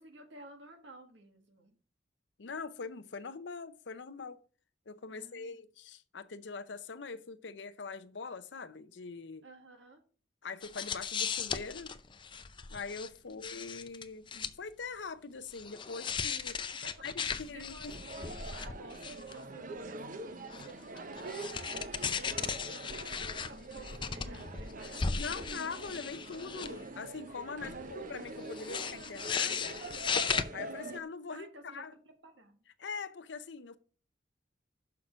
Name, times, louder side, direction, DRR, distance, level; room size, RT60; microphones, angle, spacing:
voice 1, 0.0-1.8 5.1-5.6 9.4-10.0 13.3-13.5 16.7-17.0 17.4-21.8 22.5-25.6 26.2-26.4 27.6-28.1 31.3-32.6, right 2 dB, 80° right, 1.8 m, -54 dB
voice 2, 2.4-4.4 4.9-9.5 10.4-11.9 12.7-17.9 25.1-30.3 30.5-31.9 32.8-33.8, left 4 dB, 70° left, 0.7 m, -43 dB
sound 1, 10.6-13.1 13.4-14.5 15.5-19.3 20.5-26.8 27.2-27.3 27.9-30.4, left 6 dB, 25° left, 0.5 m, -37 dB
sound 2, 17.9-31.0, right 2 dB, 45° right, 0.7 m, -44 dB
6.4 x 5.8 x 6.0 m
head